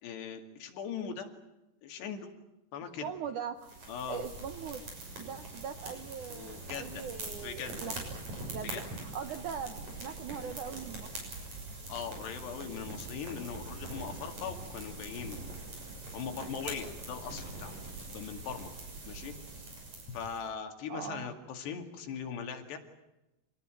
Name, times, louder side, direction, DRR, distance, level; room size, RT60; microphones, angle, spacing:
voice 1, 0.0-1.4 1.8-2.3 2.7-3.1 3.9-4.3 6.3-7.1 7.4-7.9 8.6-8.8 11.9-15.6 16.1-17.8 18.1-18.7 19.1-19.7 20.1-22.8, left 7 dB, 75° left, 5 dB, 4.4 m, -40 dB
voice 2, 3.0-3.7 4.1-4.8 5.2-7.9 8.5-8.7 9.1-11.2 19.2-19.3 20.9-21.3, right 7 dB, 70° right, 8 dB, 1.9 m, -40 dB
sound 1, 3.6-20.4, right 2 dB, 40° right, 7.7 m, -43 dB
26.5 x 19.0 x 9.2 m, 0.96 s
omnidirectional pair, 5.0 m